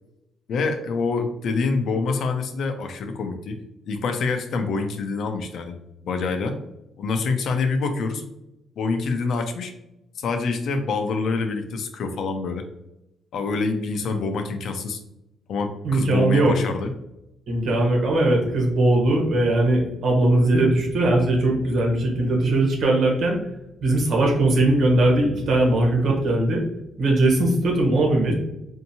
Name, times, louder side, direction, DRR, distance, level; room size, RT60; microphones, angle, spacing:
voice 1, 0.5-3.6 3.9-5.7 6.0-6.5 7.0-8.2 8.8-9.7 10.2-12.6 13.3-15.0 15.5-16.9, left 4 dB, 70° left, 6 dB, 0.6 m, -26 dB
voice 2, 15.8-16.5 17.5-23.4 23.8-26.6 27.0-28.3, right 2 dB, 65° right, -1 dB, 1.3 m, -20 dB
4.3 x 2.8 x 2.8 m, 0.87 s
cardioid pair, 90°, 0 cm